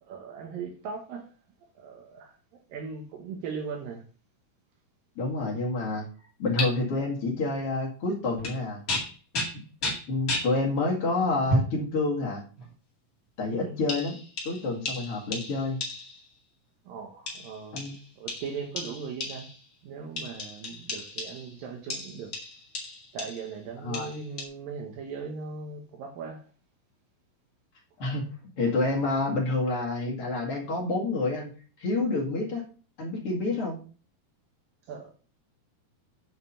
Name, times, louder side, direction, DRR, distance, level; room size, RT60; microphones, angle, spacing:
voice 1, 0.0-1.3 1.8-2.4 2.7-4.1 13.5-13.8 16.9-17.9 18.2-19.5 19.8-22.3 23.1-26.5 34.9-35.1, right 5 dB, 70° right, 2.6 m, -39 dB
voice 2, 5.2-6.1 6.4-8.8 9.8-12.4 13.4-14.2 14.4-15.8 17.7-18.0 23.8-24.1 28.0-28.3 28.6-31.5 31.8-32.6 33.0-33.8, left 3 dB, 45° left, 2.2 m, -28 dB
sound 1, 6.6-6.7 8.4-8.6 8.9-10.5 11.5-11.8 12.6-12.7 13.9-16.3 17.3-19.6 20.2-21.6 21.9-23.5 23.9-24.4, left 1 dB, 30° left, 1.8 m, -33 dB
7.9 x 5.1 x 5.5 m
omnidirectional pair, 4.5 m